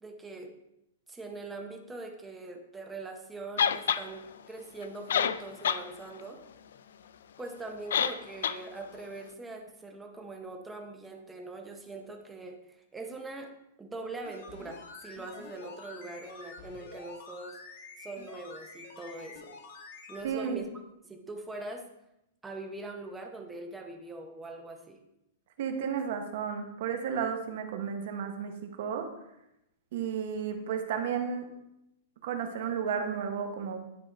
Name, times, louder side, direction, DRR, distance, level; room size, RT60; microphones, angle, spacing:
voice 1, 0.0-0.5 1.1-6.4 7.4-13.5 13.8-17.6 18.0-19.5 20.1-20.7 21.1-21.9 22.4-25.0, right 2 dB, 5° right, 3 dB, 0.7 m, -42 dB
sound 1, 3.6-4.0 4.8-4.9 5.1-5.8 6.2-6.3 7.9-8.2 8.4-8.6, left 8 dB, 75° left, 0.3 m, -26 dB
sound 2, 14.2-20.3 20.6-20.7, left 3 dB, 55° left, 1.2 m, -48 dB
voice 2, 20.2-20.6 25.6-29.1 29.9-31.5 32.2-33.8, right 7 dB, 50° right, 6 dB, 0.9 m, -33 dB
9.9 x 3.8 x 4.0 m, 0.85 s
supercardioid pair, 170°, 0 cm